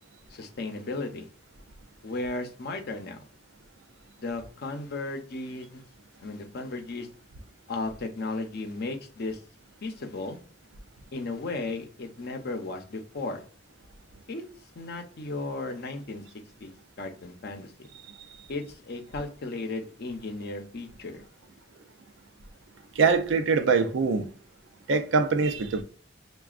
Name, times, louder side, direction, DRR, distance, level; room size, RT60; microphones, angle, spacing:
voice 1, 0.3-1.3 2.0-3.2 4.2-5.8 6.2-7.1 7.7-9.4 9.8-10.4 11.1-13.4 14.3-14.4 14.7-16.2 16.6-16.7 17.0-17.9 18.5-21.2, left 2 dB, 60° left, 0.6 m, -35 dB
voice 2, 23.0-24.3 24.9-25.8, right 4 dB, 85° right, 0.5 m, -23 dB
5.8 x 2.3 x 2.4 m
head